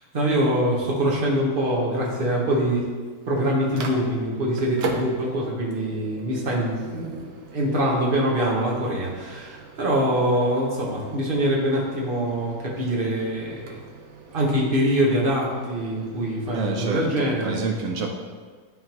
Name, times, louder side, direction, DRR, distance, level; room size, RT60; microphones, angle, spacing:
voice 1, 0.1-2.8 3.3-7.3 7.5-13.8 14.3-17.6, right 1 dB, 35° right, -3 dB, 1.1 m, -24 dB
Microwave oven, 2.9-16.5, right 4 dB, 65° right, 1.3 m, -40 dB
voice 2, 16.5-18.2, right 3 dB, 90° right, 2 dB, 0.7 m, -28 dB
11.0 x 3.8 x 2.9 m, 1.5 s
omnidirectional pair, 2.1 m